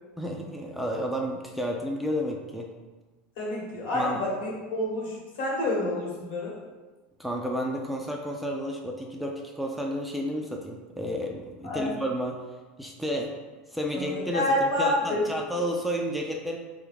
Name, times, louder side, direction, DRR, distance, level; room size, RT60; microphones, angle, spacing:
voice 1, 0.2-2.7 3.9-4.2 7.2-12.4 12.8-13.3 13.7-16.6, equal, ahead, 0 dB, 0.3 m, -31 dB
voice 2, 3.4-6.5 11.6-11.9 13.9-15.2, left 1 dB, 70° left, -4 dB, 1.3 m, -28 dB
3.4 x 2.3 x 3.4 m, 1.2 s
supercardioid pair, 120°, 5 cm